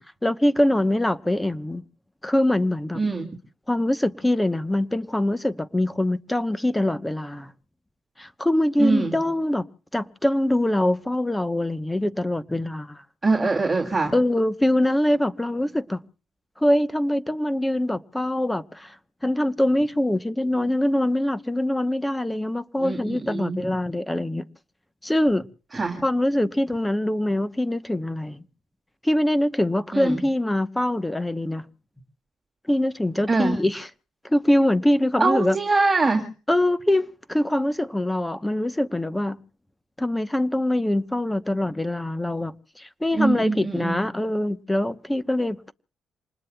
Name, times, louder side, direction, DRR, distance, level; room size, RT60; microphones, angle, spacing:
voice 1, 0.2-1.8 2.2-3.0 3.7-7.5 8.2-9.6 9.9-13.0 14.1-16.0 16.6-18.9 19.2-24.4 25.0-25.5 26.0-28.4 29.0-31.6 32.7-33.9 34.2-35.6 36.5-39.4 40.0-45.7, left 1 dB, 10° left, 0.9 m, -23 dB
voice 2, 2.9-3.4 8.8-9.1 13.2-14.1 22.8-23.7 25.7-26.0 29.9-30.2 33.3-33.6 35.2-36.3 43.1-44.0, right 3 dB, 15° right, 2.9 m, -23 dB
27.5 x 20.0 x 2.3 m
cardioid pair, 90°, 0 cm